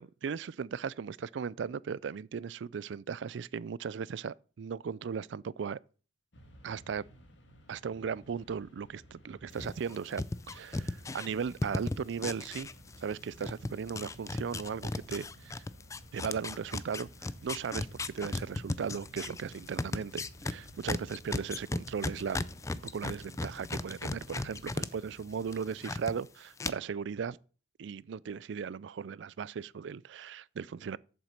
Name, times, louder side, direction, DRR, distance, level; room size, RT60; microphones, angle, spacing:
voice 1, 0.0-5.8 6.6-7.1 7.7-12.7 13.0-15.6 16.1-22.4 22.9-27.4 27.8-31.0, right 6 dB, 70° right, 0.4 m, -37 dB
Mechanisms, 6.3-25.8, equal, 65° left, 2.0 m, -55 dB
sound 1, 9.6-13.1 13.4-24.9 25.2-26.1 26.6-26.7, left 2 dB, 15° left, 0.4 m, -36 dB
8.1 x 7.4 x 6.4 m
head